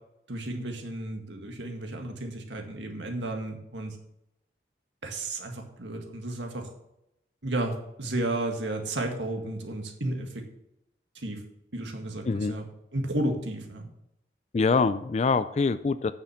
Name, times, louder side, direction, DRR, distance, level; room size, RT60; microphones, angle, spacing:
voice 1, 0.3-4.0 5.0-6.7 7.4-10.4 11.2-11.4 11.7-12.7 12.9-13.9, right 1 dB, 90° right, 3 dB, 1.9 m, -33 dB
voice 2, 14.5-16.1, left 4 dB, 35° left, 13 dB, 0.3 m, -24 dB
9.2 x 6.7 x 5.9 m, 0.83 s
head